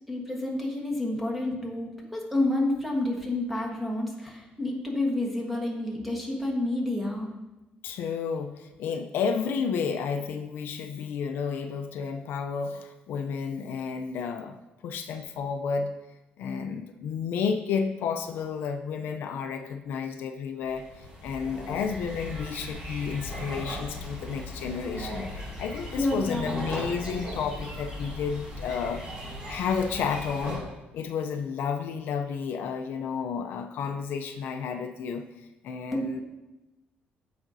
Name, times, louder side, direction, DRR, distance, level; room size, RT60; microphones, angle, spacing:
voice 1, 0.1-7.3 25.9-26.7 35.9-36.2, left 1 dB, ahead, -1 dB, 1.3 m, -29 dB
voice 2, 7.8-14.6 14.8-15.9 16.4-20.9 21.2-29.0 29.5-30.6 30.9-35.2 35.6-36.2, left 6 dB, 70° left, 6 dB, 0.5 m, -31 dB
sound 1, 20.6-30.6, left 1 dB, 20° right, 2.7 m, -38 dB
14.0 x 4.9 x 2.7 m, 1.0 s
cardioid pair, 160°, 4 cm